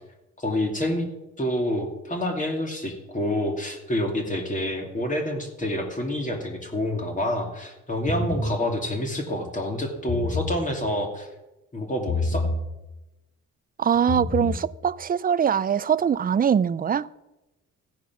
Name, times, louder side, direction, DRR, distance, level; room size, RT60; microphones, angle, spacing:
voice 1, 0.4-1.1 1.4-11.3 11.7-12.4, left 1 dB, 25° left, 2.6 m, -28 dB
sound 1, 8.1-8.6 9.9-10.6 12.1-12.6 13.9-14.6, left 3 dB, 55° left, 3.4 m, -27 dB
voice 2, 13.8-17.1, right 8 dB, 30° right, 0.5 m, -22 dB
15.0 x 9.4 x 6.1 m
cardioid pair, 90°, 30 cm